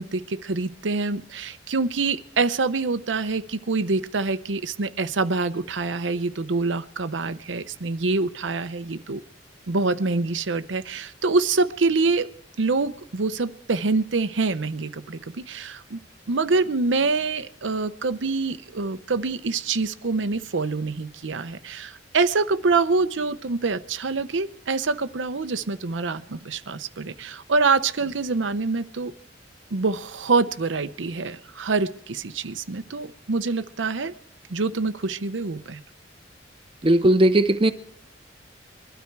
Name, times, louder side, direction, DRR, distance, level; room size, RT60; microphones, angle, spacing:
voice 1, 0.0-9.2 9.7-12.3 12.6-16.0 16.3-29.1 29.7-34.1 34.5-35.8, right 3 dB, 85° right, 11 dB, 0.7 m, -25 dB
voice 2, 36.8-37.7, right 1 dB, 30° right, 9 dB, 0.7 m, -17 dB
22.5 x 12.5 x 4.7 m, 0.70 s
head